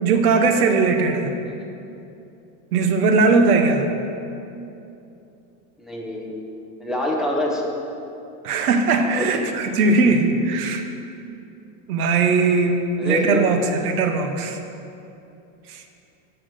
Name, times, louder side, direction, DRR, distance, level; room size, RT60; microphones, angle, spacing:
voice 1, 0.0-1.3 2.7-3.9 8.4-10.8 11.9-14.6 15.7-15.8, right 4 dB, 90° right, 6 dB, 1.0 m, -19 dB
voice 2, 5.8-6.5 6.8-7.6 9.1-9.3 13.0-13.4, left 1 dB, ahead, -3 dB, 0.5 m, -25 dB
7.4 x 4.7 x 6.6 m, 2.7 s
supercardioid pair, 145°, 43 cm